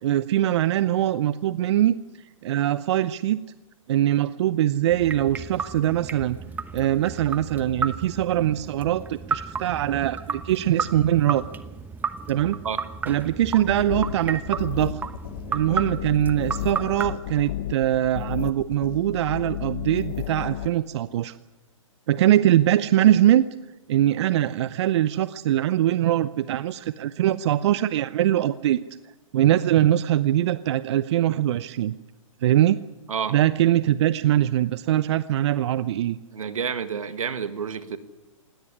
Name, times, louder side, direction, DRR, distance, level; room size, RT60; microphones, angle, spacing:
voice 1, 0.0-2.0 2.4-3.4 3.9-6.4 6.7-11.5 12.3-12.6 13.1-15.0 15.5-21.4 22.1-23.4 23.9-28.8 29.3-32.0 32.4-32.8 33.3-36.2, right 12 dB, 55° right, 15 dB, 0.7 m, -22 dB
sound 1, 4.9-17.2, right 5 dB, 10° right, 1.0 m, -33 dB
sound 2, 13.6-20.7, left 13 dB, 45° left, 0.9 m, -33 dB
voice 2, 36.3-38.0, right 7 dB, 80° right, 11 dB, 1.8 m, -29 dB
19.5 x 17.5 x 9.8 m, 1.1 s
hypercardioid pair, 125°, 17 cm